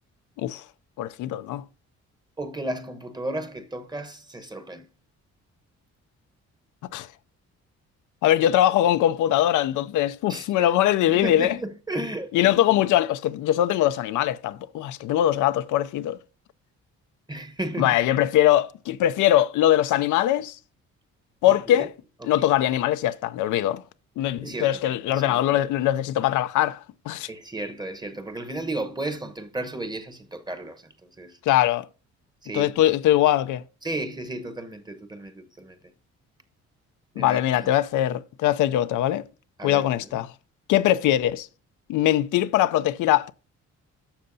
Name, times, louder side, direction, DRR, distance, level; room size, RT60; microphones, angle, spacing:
voice 1, 1.0-1.6 6.9-7.1 8.2-11.6 12.3-16.2 17.8-20.6 21.4-21.9 22.2-23.8 24.2-27.3 31.5-31.9 32.5-33.6 37.2-39.2 39.6-40.3 40.7-41.5 41.9-43.3, left 13 dB, 80° left, 0.5 m, -22 dB
voice 2, 2.4-4.9 10.3-10.7 11.1-12.9 17.3-18.0 21.5-21.9 22.2-22.5 24.4-25.6 27.3-31.4 32.4-32.7 33.8-35.8 37.1-37.7 39.6-40.2, right 1 dB, 15° right, 1.0 m, -34 dB
11.5 x 6.7 x 2.7 m
cardioid pair, 90°, 30 cm